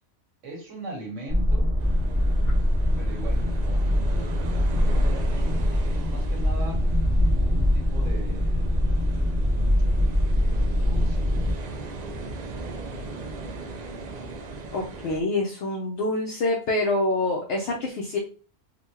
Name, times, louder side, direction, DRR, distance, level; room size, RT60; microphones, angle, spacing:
voice 1, 0.4-1.7 3.0-6.8 7.3-8.7 9.4-9.9 10.4-11.3, right 2 dB, 85° right, 0 dB, 1.5 m, -40 dB
sound 1, 1.3-11.5, left 1 dB, 25° right, 0.9 m, -23 dB
sound 2, 1.8-15.2, right 3 dB, 65° right, 0.4 m, -38 dB
voice 2, 14.7-18.2, left 2 dB, 65° left, -1 dB, 0.8 m, -26 dB
3.7 x 2.2 x 2.9 m, 0.38 s
omnidirectional pair, 1.2 m